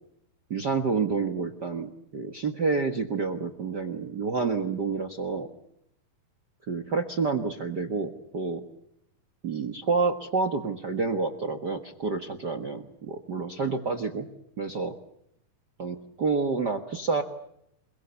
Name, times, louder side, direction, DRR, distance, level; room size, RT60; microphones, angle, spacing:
voice 1, 0.5-5.5 6.7-8.6 9.4-14.3 14.6-15.0 15.8-17.2, right 4 dB, 55° right, 11 dB, 1.1 m, -29 dB
28.5 x 22.0 x 7.0 m, 0.76 s
omnidirectional pair, 4.2 m